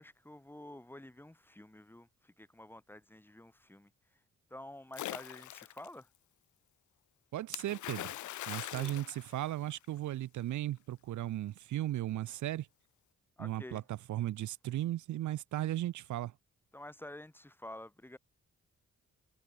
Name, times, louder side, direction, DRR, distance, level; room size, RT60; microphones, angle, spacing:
voice 1, 0.0-4.2 4.5-6.1 8.5-9.0 13.4-13.9 16.7-18.2, left 1 dB, 5° left, 1.6 m, -50 dB
Splash splatter, 4.9-5.9 7.5-10.0, left 14 dB, 80° left, 0.7 m, -42 dB
voice 2, 7.3-8.2 8.5-9.1 9.3-12.7 13.4-13.8 14.1-16.3, right 14 dB, 85° right, 0.8 m, -36 dB
cardioid pair, 85°, 29 cm